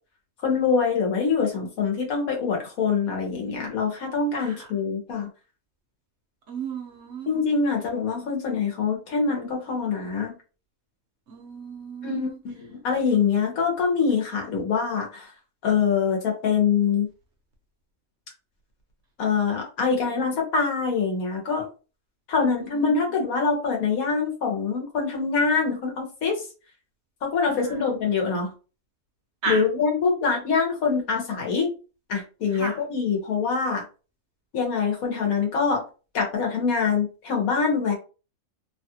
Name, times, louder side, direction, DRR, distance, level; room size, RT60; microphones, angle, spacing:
voice 1, 0.4-5.3 7.3-10.4 12.0-15.3 15.6-17.1 19.2-21.7 22.3-26.4 27.2-28.5 29.5-31.7 32.1-33.8 34.5-35.8 36.1-37.9, left 5 dB, 70° left, 0 dB, 1.4 m, -24 dB
voice 2, 6.5-7.3 11.3-12.4 22.4-22.9 27.4-27.8 29.4-29.6 32.5-32.8, right 4 dB, 55° right, 1 dB, 1.0 m, -34 dB
3.1 x 2.4 x 2.7 m, 0.34 s
omnidirectional pair, 1.6 m